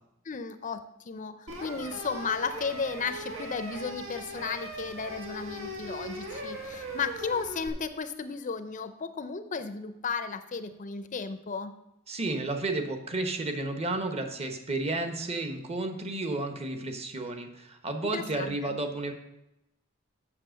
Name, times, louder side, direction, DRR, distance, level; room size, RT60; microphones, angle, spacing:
voice 1, 0.3-11.8 18.1-18.8, left 5 dB, 40° left, 11 dB, 0.5 m, -34 dB
sound 1, 1.5-7.7, right 1 dB, 80° right, 1.8 m, -39 dB
voice 2, 12.1-19.1, right 2 dB, 30° right, 6 dB, 1.1 m, -32 dB
7.6 x 6.5 x 6.4 m, 0.88 s
head